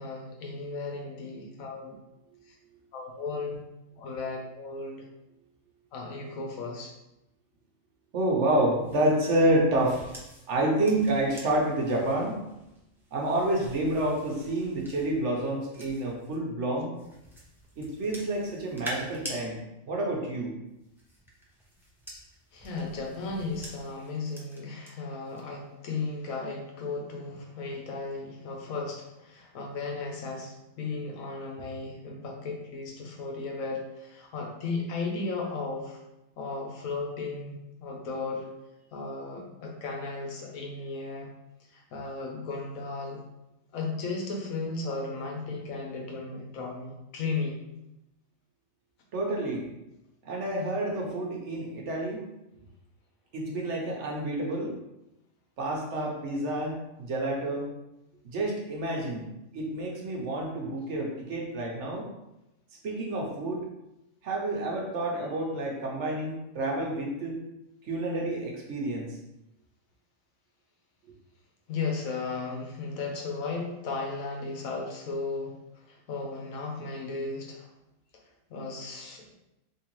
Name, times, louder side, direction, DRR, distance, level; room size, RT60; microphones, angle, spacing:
voice 1, 0.0-1.9 2.5-2.6 2.9-3.5 4.0-5.0 5.9-6.9 22.5-36.0 36.4-37.5 37.8-38.5 38.9-41.3 41.7-43.2 43.7-47.6 71.7-75.5 75.9-77.7 78.5-79.3, left 3 dB, 85° left, 1 dB, 1.2 m, -35 dB
voice 2, 8.1-10.1 10.5-12.4 13.1-16.9 17.8-20.6 49.1-49.7 50.2-52.3 53.3-54.7 55.6-57.7 58.2-62.1 62.8-63.7 64.2-67.4 67.8-69.2, right 1 dB, 60° right, -1 dB, 1.0 m, -29 dB
sound 1, 8.8-16.4 16.9-19.4 20.7-24.9 25.3-25.6, equal, 5° right, 0.3 m, -46 dB
3.7 x 2.9 x 3.0 m, 0.90 s
omnidirectional pair, 1.4 m